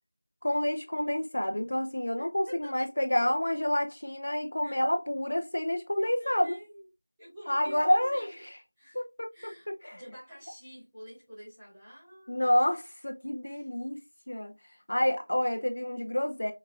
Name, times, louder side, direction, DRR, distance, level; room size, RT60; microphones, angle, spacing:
voice 1, 0.4-6.5 7.5-8.3 8.9-9.3 9.8-10.0 12.3-14.0 14.3-14.5 14.9-16.5, left 1 dB, 55° left, 0.6 m, -28 dB
voice 2, 2.2-2.9 4.6-4.8 6.0-6.8 7.2-8.4 8.8-9.0 9.3-12.5 13.4-13.7, equal, ahead, 1.7 m, -48 dB
5.8 x 3.1 x 2.4 m
figure-of-eight pair, 175°, 0 cm